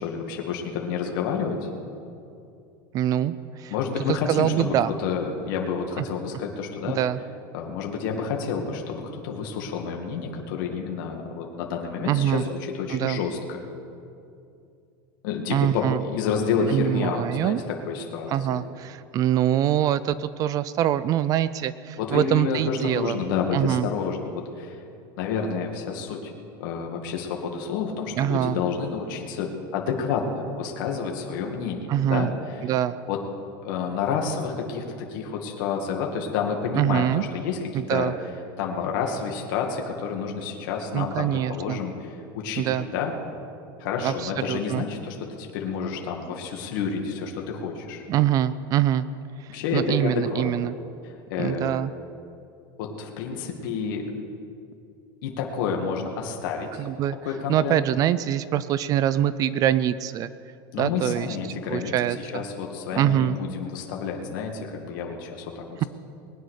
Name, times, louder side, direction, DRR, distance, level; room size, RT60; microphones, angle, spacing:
voice 1, 0.0-1.6 3.7-7.0 7.5-13.6 15.2-18.6 22.0-24.8 25.2-26.3 26.6-32.6 33.1-33.2 33.6-38.1 38.6-43.1 43.8-48.0 49.5-50.5 51.0-51.8 52.8-54.1 55.2-56.9 57.2-57.8 60.7-65.8, left 6 dB, 65° left, 1 dB, 2.2 m, -29 dB
voice 2, 2.9-3.7 4.3-4.9 6.8-7.2 12.1-12.4 12.9-13.2 15.5-16.0 16.7-17.6 18.3-23.2 23.5-23.9 28.2-28.6 31.9-32.3 32.6-33.0 36.7-37.2 37.7-38.1 40.9-41.8 42.6-42.9 44.0-44.8 48.1-49.1 49.4-50.8 51.4-51.9 56.8-57.2 57.5-60.3 60.8-61.4 61.7-62.4 62.9-63.4, right 11 dB, 30° right, 16 dB, 0.4 m, -24 dB
20.5 x 9.8 x 6.5 m, 2.5 s
supercardioid pair, 160°, 12 cm